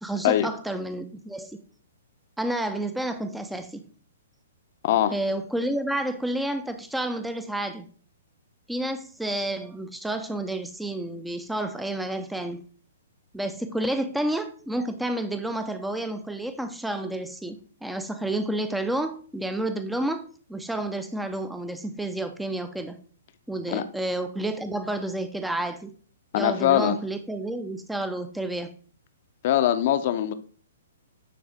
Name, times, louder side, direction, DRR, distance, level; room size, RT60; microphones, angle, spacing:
voice 1, 0.0-1.6 2.4-3.9 5.1-7.9 8.7-12.6 13.3-20.2 20.5-23.0 23.5-25.9 26.4-28.7, right 1 dB, 5° right, 0.6 m, -30 dB
voice 2, 26.3-27.0 29.4-30.3, left 12 dB, 50° left, 0.7 m, -22 dB
9.5 x 3.6 x 3.5 m
hypercardioid pair, 135°, 0 cm